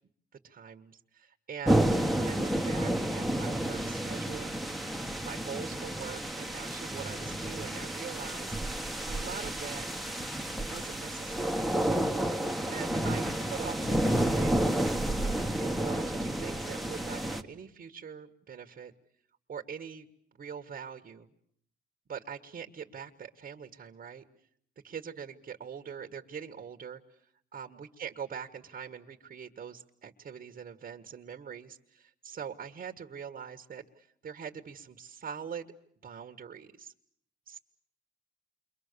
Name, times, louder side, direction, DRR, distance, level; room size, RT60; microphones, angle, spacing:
voice 1, 0.4-4.5 5.2-8.5 9.1-9.9 10.7-11.6 12.7-14.9 15.6-18.9 19.5-20.1 20.4-21.3 22.1-24.2 24.8-27.2 27.5-35.7 36.0-36.9 37.5-37.6, right 7 dB, 45° right, 5 dB, 1.7 m, -43 dB
sound 1, 1.7-17.4, right 1 dB, ahead, 1.6 m, -30 dB
29.0 x 24.0 x 6.9 m, 0.67 s
cardioid pair, 90°, 20 cm